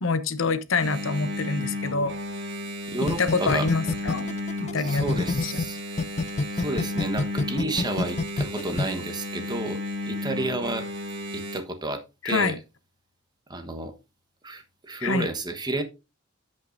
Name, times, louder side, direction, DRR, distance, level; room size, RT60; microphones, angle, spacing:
voice 1, 0.0-2.1 3.2-5.5 12.2-12.6 15.0-15.3, left 4 dB, 85° left, 0.9 m, -26 dB
Engine, 0.8-11.6, left 1 dB, 65° right, 1.6 m, -34 dB
voice 2, 2.9-3.7 4.8-5.8 6.5-10.9 11.3-12.6 13.5-13.9 14.4-15.8, right 2 dB, 20° right, 1.2 m, -31 dB
sound 1, 3.1-5.6 6.0-8.8, left 3 dB, 35° left, 0.4 m, -26 dB
15.5 x 5.5 x 2.6 m
head